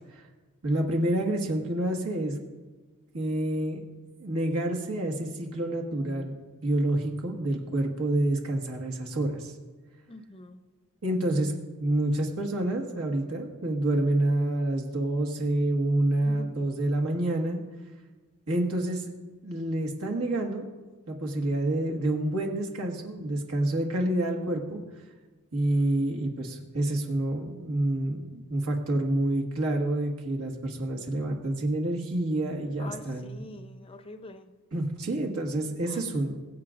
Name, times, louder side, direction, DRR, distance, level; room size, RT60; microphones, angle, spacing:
voice 1, 0.6-2.4 3.1-3.8 4.2-9.5 11.0-11.5 11.8-17.6 18.5-19.1 19.4-20.7 21.1-24.8 25.5-33.4 34.7-36.4, right 1 dB, 70° right, 1 dB, 1.6 m, -28 dB
voice 2, 10.1-10.6 16.2-16.6 32.8-34.5 35.9-36.0, left 2 dB, 25° left, 9 dB, 0.6 m, -45 dB
22.0 x 8.4 x 2.5 m, 1.3 s
head